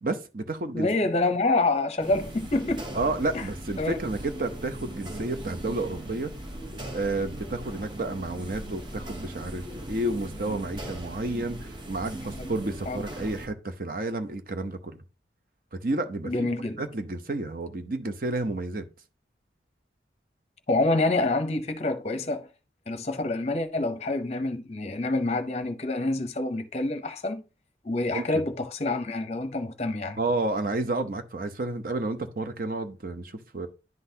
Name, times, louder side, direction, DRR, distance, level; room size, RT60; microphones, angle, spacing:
voice 1, 0.0-0.9 2.9-6.3 6.9-15.0 15.7-16.5 16.8-18.8 28.1-28.4 30.2-33.7, right 2 dB, 50° right, 0.7 m, -31 dB
voice 2, 0.7-2.9 3.3-3.4 3.8-4.0 12.4-12.5 12.9-13.0 16.2-16.8 20.7-22.5 22.9-27.4 27.8-30.2, left 2 dB, 35° left, 0.7 m, -27 dB
sound 1, 2.0-13.5, right 1 dB, 25° right, 0.9 m, -39 dB
10.5 x 3.9 x 2.7 m
head